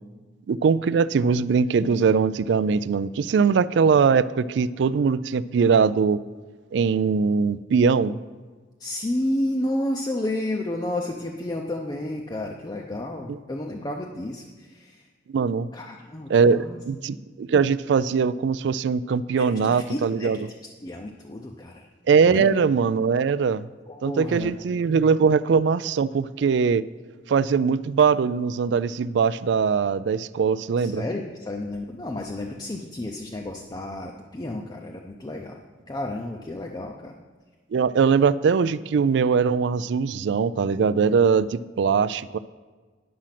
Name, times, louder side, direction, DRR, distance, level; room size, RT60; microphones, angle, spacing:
voice 1, 0.5-6.2 6.7-8.2 13.3-13.4 15.3-15.7 16.3-20.4 22.1-23.7 24.0-26.8 27.3-31.0 37.7-42.4, right 5 dB, 75° right, 16 dB, 0.3 m, -21 dB
voice 2, 8.8-15.1 15.7-16.8 19.4-20.3 20.8-21.9 22.3-22.5 23.9-24.5 30.8-37.1, left 1 dB, 20° left, 1 dB, 0.5 m, -31 dB
10.5 x 6.1 x 5.8 m, 1.4 s
head